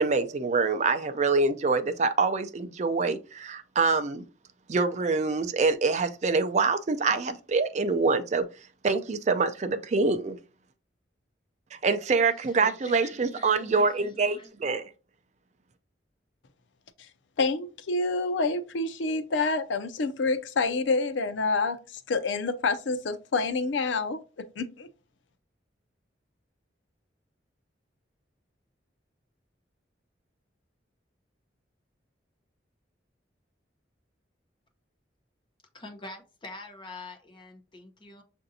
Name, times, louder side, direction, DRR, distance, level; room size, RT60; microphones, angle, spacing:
voice 1, 0.0-4.2 4.7-8.4 8.8-10.4 11.8-14.9, right 4 dB, 40° right, 0.4 m, -25 dB
voice 2, 12.6-14.5 35.7-38.2, left 2 dB, 25° left, 0.7 m, -44 dB
voice 3, 17.4-24.9, left 3 dB, 85° left, 0.5 m, -28 dB
6.6 x 2.6 x 2.7 m
head